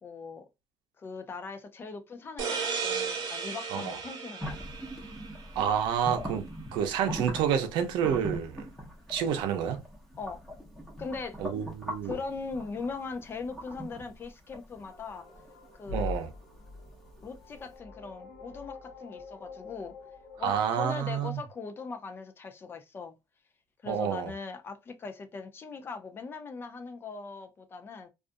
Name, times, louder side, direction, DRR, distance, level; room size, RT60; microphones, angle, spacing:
voice 1, 0.0-0.5 1.0-4.6 10.2-10.4 11.0-11.4 12.0-15.3 15.8-16.2 17.2-20.0 20.4-23.1 23.8-28.1, left 4 dB, 30° left, 0.4 m, -40 dB
sound 1, 2.4-5.8, right 6 dB, 55° right, 0.9 m, -35 dB
sound 2, 4.4-17.3, equal, 5° left, 0.8 m, -41 dB
voice 2, 5.6-6.5 6.7-8.6 9.1-9.8 11.4-12.1 15.9-16.3 20.4-21.4 23.9-24.3, right 8 dB, 75° right, 0.6 m, -29 dB
sound 3, 14.9-20.8, left 2 dB, 55° left, 0.8 m, -44 dB
2.5 x 2.4 x 2.5 m
cardioid pair, 135°, 8 cm